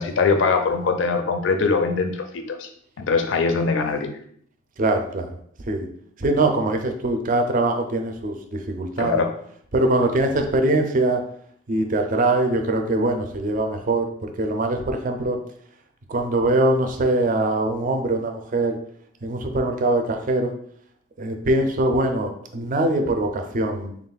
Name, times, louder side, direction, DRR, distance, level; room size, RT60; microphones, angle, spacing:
voice 1, 0.0-2.7 3.0-4.2 9.0-9.3, left 4 dB, 70° left, 6 dB, 0.4 m, -22 dB
voice 2, 4.8-5.3 5.7-5.9 6.2-9.2 9.7-11.2 11.7-15.4 16.1-18.8 19.2-20.5 21.2-23.9, right 2 dB, 40° right, 5 dB, 0.4 m, -22 dB
3.6 x 2.4 x 3.9 m, 0.62 s
head